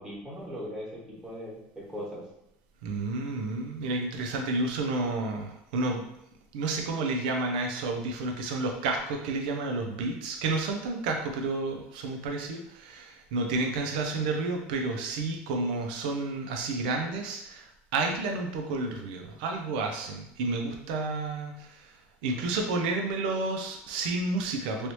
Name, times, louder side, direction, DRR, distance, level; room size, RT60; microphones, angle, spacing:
voice 1, 0.0-2.2, equal, 10° right, -7 dB, 1.3 m, -39 dB
voice 2, 2.8-6.0 6.5-21.9 22.2-24.9, right 3 dB, 90° right, 3 dB, 0.4 m, -31 dB
3.1 x 2.7 x 3.0 m, 0.80 s
supercardioid pair, 130°, 5 cm